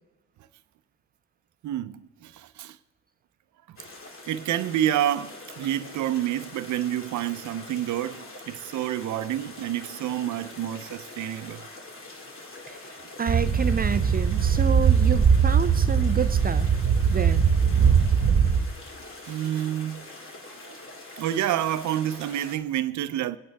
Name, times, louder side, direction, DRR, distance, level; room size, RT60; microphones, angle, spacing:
voice 1, 1.6-2.8 3.7-3.8 4.3-11.6 19.2-20.1 20.6-20.8 21.2-23.4, right 12 dB, 70° right, 0.7 m, -28 dB
sound 1, 3.8-22.6, left 2 dB, 45° left, 2.4 m, -44 dB
voice 2, 12.7-16.7 17.1-17.5, right 6 dB, 30° right, 0.5 m, -29 dB
sound 2, 13.3-18.7, right 6 dB, 45° right, 1.2 m, -21 dB
23.0 x 8.9 x 3.5 m
cardioid pair, 90°, 30 cm